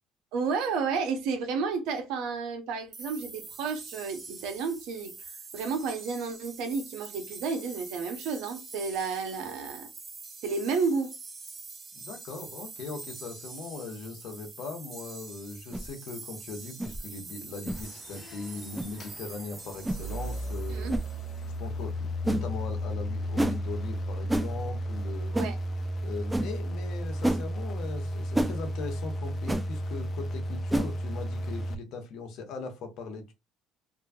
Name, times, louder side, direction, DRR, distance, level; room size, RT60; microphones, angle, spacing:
voice 1, 0.3-5.1 5.5-9.9 10.4-11.1 20.7-21.0 25.3-25.6, right 5 dB, 80° right, 0.9 m, -31 dB
sound 1, 2.9-21.6, right 4 dB, 30° right, 0.8 m, -45 dB
voice 2, 11.9-20.9 21.4-25.3 26.0-33.3, left 4 dB, 70° left, 1.1 m, -40 dB
sound 2, 15.7-15.9 16.8-17.0 17.7-17.8 18.7-18.9 19.8-20.0 20.9-21.1 22.3-22.5 23.4-23.6 24.3-24.5 25.3-25.5 26.3-26.5 27.2-27.4 28.3-28.5 29.5-29.6 30.7-30.9, right 1 dB, 10° right, 0.4 m, -28 dB
sound 3, 17.7-31.7, equal, 45° left, 0.5 m, -34 dB
2.8 x 2.3 x 2.7 m
cardioid pair, 105°, 0 cm